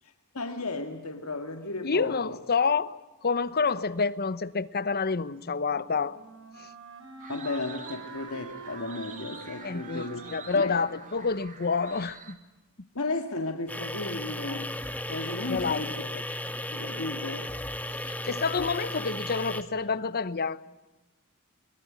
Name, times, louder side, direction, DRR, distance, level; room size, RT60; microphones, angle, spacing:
voice 1, 0.3-2.4 7.3-10.2 10.5-10.7 12.9-14.7 15.1-16.0 16.4-17.5, left 2 dB, 70° left, 2.1 m, -34 dB
voice 2, 1.8-6.2 6.6-6.7 9.6-12.3 15.4-16.2 17.9-20.6, left 5 dB, 45° left, 0.9 m, -28 dB
Wind instrument woodwind instrument, 5.2-12.0, right 3 dB, 60° right, 4.6 m, -47 dB
sound 1, 7.2-12.3, right 5 dB, 35° right, 2.6 m, -46 dB
sound 2, 13.7-19.6, left 1 dB, 5° left, 1.6 m, -35 dB
23.0 x 21.5 x 9.8 m
head